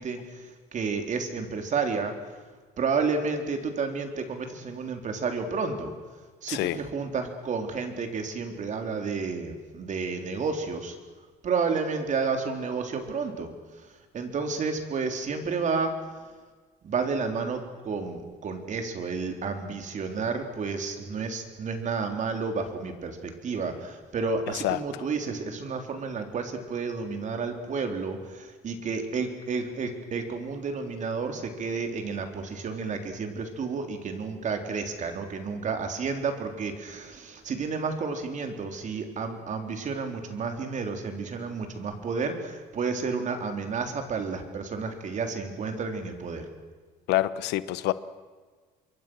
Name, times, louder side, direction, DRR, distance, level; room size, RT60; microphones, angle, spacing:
voice 1, 0.0-2.1 2.8-5.9 6.4-11.0 11.4-13.5 14.1-16.0 16.8-46.5, right 4 dB, 45° right, 5 dB, 3.7 m, -31 dB
voice 2, 6.5-6.8 24.6-25.0 47.1-47.9, left 15 dB, 90° left, 15 dB, 1.0 m, -27 dB
26.5 x 23.0 x 6.4 m, 1.4 s
cardioid pair, 110°, 17 cm